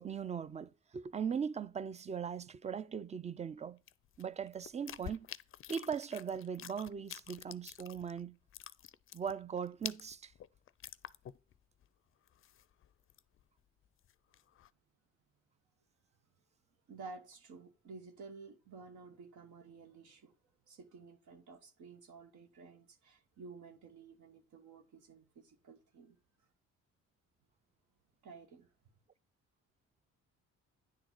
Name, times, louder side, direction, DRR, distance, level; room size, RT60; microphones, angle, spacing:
voice 1, 0.0-3.8 4.2-5.3 5.7-8.4 9.1-10.3, right 7 dB, 25° right, 0.4 m, -39 dB
sound 1, 3.9-8.2 8.5-11.6 11.8-11.9 12.3-13.4 13.8-14.7, left 11 dB, 45° left, 0.4 m, -48 dB
voice 2, 16.9-20.3 20.7-26.2 28.2-28.7, right 4 dB, 75° right, 1.1 m, -53 dB
9.7 x 3.9 x 4.4 m
cardioid pair, 90°, 30 cm